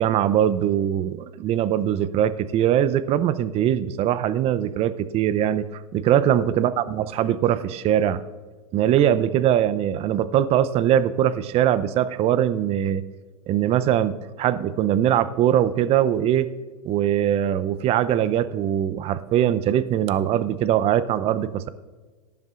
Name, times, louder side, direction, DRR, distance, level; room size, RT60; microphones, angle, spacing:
voice 1, 0.0-5.6 5.9-8.2 8.7-13.0 13.5-16.5 16.8-21.7, right 10 dB, 35° right, 14 dB, 0.6 m, -21 dB
18.5 x 10.5 x 2.5 m, 1.4 s
hypercardioid pair, 105°, 19 cm